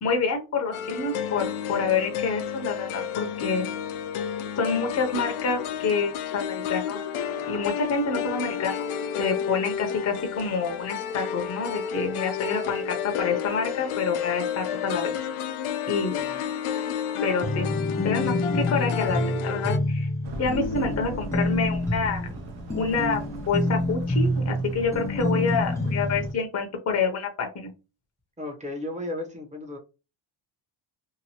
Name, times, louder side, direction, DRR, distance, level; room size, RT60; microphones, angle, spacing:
voice 1, 0.0-3.7 4.6-7.0 7.5-8.9 9.2-15.2 15.9-16.1 17.2-17.7 18.0-20.1 20.4-22.3 22.7-23.2 23.5-27.7, left 5 dB, 35° left, 0.7 m, -27 dB
sound 1, 0.7-19.8, left 8 dB, 75° left, 0.6 m, -31 dB
voice 2, 16.1-16.4 22.3-22.4 23.2-23.3 28.4-29.8, left 2 dB, 15° right, 0.8 m, -35 dB
sound 2, 17.4-26.3, left 1 dB, 5° left, 0.3 m, -27 dB
sound 3, 20.2-26.3, right 1 dB, 55° right, 0.6 m, -39 dB
2.9 x 2.5 x 2.8 m
cardioid pair, 125°, 50 cm